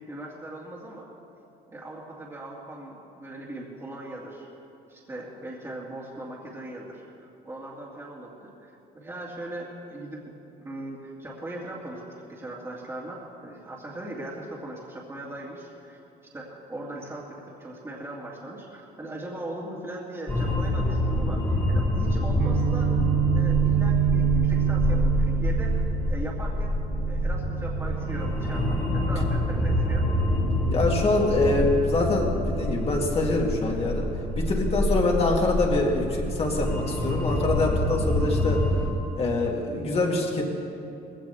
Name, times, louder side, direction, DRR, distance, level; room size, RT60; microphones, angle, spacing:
voice 1, 0.1-1.1 1.7-4.5 4.9-10.2 10.6-12.0 12.3-16.0 16.3-23.0 23.3-25.8 26.1-26.7 27.1-30.1, right 1 dB, 15° right, -6 dB, 2.3 m, -39 dB
sound 1, 20.3-38.9, left 1 dB, 15° left, 2.7 m, -26 dB
Guitar, 22.4-30.2, right 15 dB, 65° right, 0.6 m, -28 dB
voice 2, 30.7-34.1 34.4-38.6 39.2-40.5, left 2 dB, 35° left, -1 dB, 2.6 m, -25 dB
20.0 x 16.5 x 3.5 m, 2.6 s
cardioid pair, 110°, 17 cm